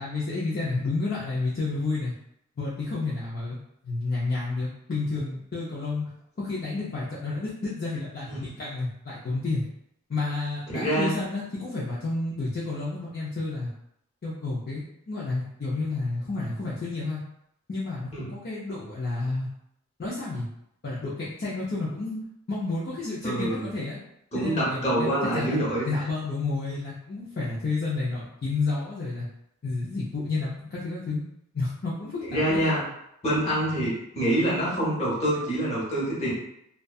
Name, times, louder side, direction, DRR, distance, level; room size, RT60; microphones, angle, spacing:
voice 1, 0.0-2.1 2.6-3.6 3.8-6.1 6.4-9.6 10.1-13.7 14.2-17.2 17.7-19.5 20.0-20.5 20.8-22.2 22.5-24.0 24.3-29.3 29.6-31.2 31.5-32.8, left 3 dB, 45° left, -7 dB, 0.5 m, -30 dB
voice 2, 10.7-11.2 18.1-18.3 23.2-23.7 24.3-25.9 32.3-32.8 33.2-36.3, right 1 dB, 30° left, -6 dB, 0.9 m, -26 dB
2.6 x 2.3 x 2.3 m, 0.78 s
head